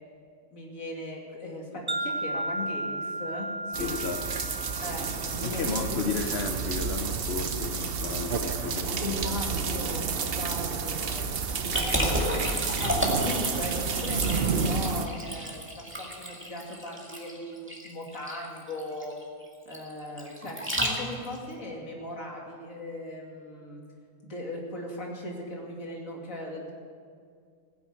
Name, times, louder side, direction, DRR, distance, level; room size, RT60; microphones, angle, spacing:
voice 1, 0.5-3.9 4.8-6.2 9.0-12.2 12.5-19.2 19.7-23.8 24.2-26.7, left 1 dB, 70° left, -1 dB, 3.1 m, -38 dB
Wind chime, 1.9-6.2, right 1 dB, 25° right, 0.5 m, -35 dB
sound 1, 3.7-15.1, right 5 dB, 50° right, 1.0 m, -30 dB
voice 2, 3.8-4.4 5.4-9.2 9.7-9.8, left 5 dB, 55° left, 5 dB, 1.0 m, -34 dB
Liquid, 11.7-21.4, equal, 10° right, 2.0 m, -32 dB
16.0 x 9.9 x 7.7 m, 2.1 s
omnidirectional pair, 1.4 m